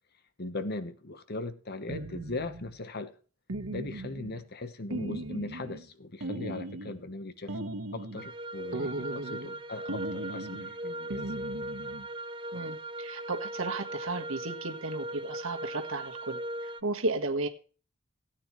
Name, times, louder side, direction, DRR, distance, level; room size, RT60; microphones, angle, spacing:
voice 1, 0.4-3.1 3.7-7.6 7.9-11.2, left 2 dB, 50° left, 1.2 m, -39 dB
sound 1, 1.9-2.8 3.5-4.4 4.9-5.9 6.2-7.0 7.5-8.3 8.7-9.6 9.9-10.7 11.1-12.1, right 1 dB, 90° right, 1.4 m, -38 dB
sound 2, 8.2-16.8, right 1 dB, 25° right, 0.6 m, -39 dB
voice 2, 12.5-17.5, right 2 dB, 70° right, 1.5 m, -34 dB
17.5 x 9.0 x 3.2 m
head